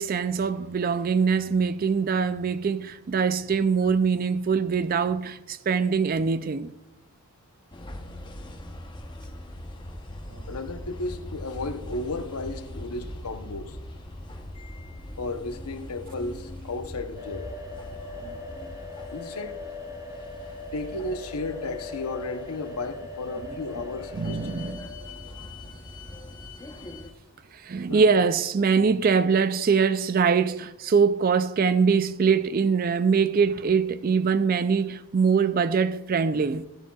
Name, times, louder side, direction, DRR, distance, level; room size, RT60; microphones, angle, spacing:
voice 1, 0.0-6.7 10.3-10.5 18.2-18.3 24.1-24.8 27.5-36.7, right 5 dB, 40° right, 0.4 m, -23 dB
sound 1, 7.7-27.1, left 1 dB, 20° left, 0.8 m, -41 dB
voice 2, 10.5-13.8 15.2-17.5 19.1-19.6 20.7-24.4 27.9-28.1, left 2 dB, 80° left, 0.8 m, -34 dB
sound 2, 17.1-24.7, left 3 dB, 15° right, 2.3 m, -40 dB
13.0 x 11.0 x 2.4 m
head